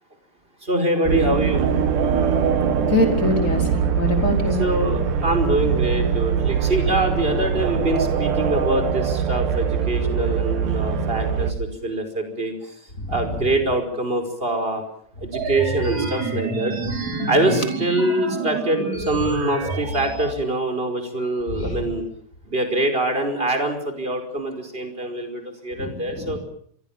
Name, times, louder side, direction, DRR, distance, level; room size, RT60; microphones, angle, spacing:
voice 1, 0.6-1.6 4.6-12.7 13.1-14.8 15.2-16.8 17.3-22.0 22.5-26.4, right 1 dB, 15° right, 6 dB, 5.1 m, -24 dB
sound 1, 1.1-11.5, right 7 dB, 75° right, 3.3 m, -22 dB
voice 2, 2.8-4.6 17.2-17.3 21.6-21.8 25.8-26.4, left 1 dB, 25° left, 3 dB, 5.2 m, -24 dB
sound 2, 15.3-20.3, right 3 dB, 60° right, 6.6 m, -28 dB
27.0 x 23.0 x 7.4 m, 0.64 s
omnidirectional pair, 3.7 m